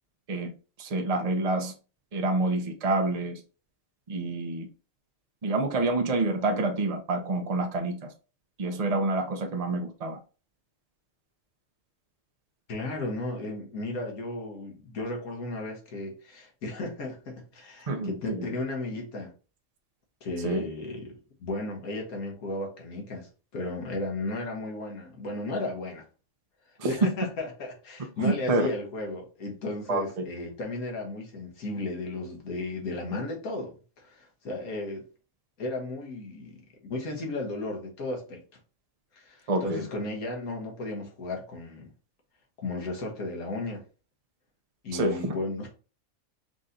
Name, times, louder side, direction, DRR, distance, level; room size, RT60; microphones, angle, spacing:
voice 1, 0.8-1.7 2.1-3.4 4.1-4.7 5.4-8.1 8.6-10.2 17.9-18.4 20.4-20.7 26.8-26.9 28.2-28.7 29.9-30.0 39.5-39.8 44.9-45.3, right 2 dB, 35° right, 0.6 m, -27 dB
voice 2, 12.7-19.3 20.2-26.0 26.8-35.1 35.6-38.4 39.1-41.9 42.6-43.8 44.8-45.7, left 2 dB, 80° left, 1.7 m, -35 dB
4.8 x 2.7 x 3.8 m
omnidirectional pair, 1.5 m